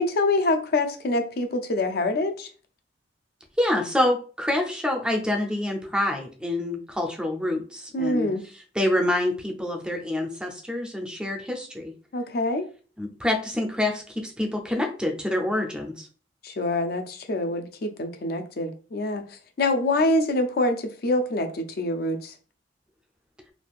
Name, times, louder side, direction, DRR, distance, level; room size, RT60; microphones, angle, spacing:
voice 1, 0.0-2.5 7.9-8.4 12.1-12.7 16.4-22.3, left 2 dB, 55° left, 0.5 m, -25 dB
voice 2, 3.6-8.3 8.8-11.9 13.0-16.1, left 1 dB, 5° right, 0.5 m, -26 dB
3.3 x 2.4 x 2.4 m
head